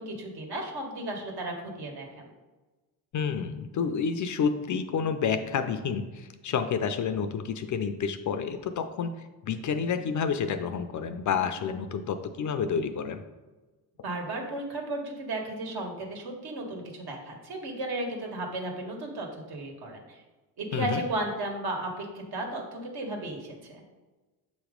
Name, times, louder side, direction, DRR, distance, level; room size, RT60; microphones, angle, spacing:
voice 1, 0.0-2.3 14.0-20.2 20.6-23.8, right 1 dB, 60° right, 1 dB, 1.6 m, -34 dB
voice 2, 3.1-9.1 9.4-13.2 20.7-21.0, left 6 dB, 45° left, 8 dB, 0.5 m, -29 dB
7.4 x 3.1 x 5.0 m, 1.2 s
cardioid pair, 100°, 43 cm